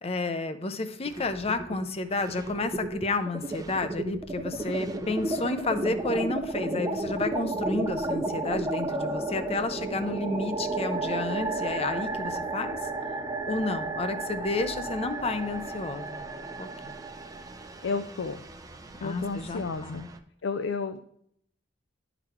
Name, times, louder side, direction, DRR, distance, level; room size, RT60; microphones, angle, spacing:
voice 1, 0.0-12.8 13.5-16.2 16.6-16.7 19.0-20.0, left 3 dB, 35° left, 10 dB, 0.6 m, -31 dB
sound 1, 1.0-1.8 2.1-20.2, right 2 dB, 20° right, 0.5 m, -33 dB
voice 2, 17.8-18.4 19.0-20.1 20.4-21.1, left 4 dB, 80° left, 9 dB, 0.4 m, -32 dB
11.0 x 4.0 x 4.3 m, 0.69 s
head